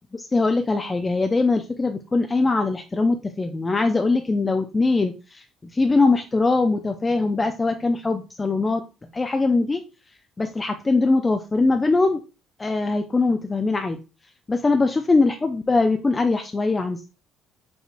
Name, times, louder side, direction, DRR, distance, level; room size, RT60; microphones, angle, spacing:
voice 1, 0.1-5.4 5.7-8.8 9.1-9.8 10.4-12.2 12.6-14.0 14.5-17.1, left 3 dB, 25° left, 5 dB, 0.4 m, -21 dB
5.5 x 2.8 x 2.5 m, 0.31 s
supercardioid pair, 65°, 0 cm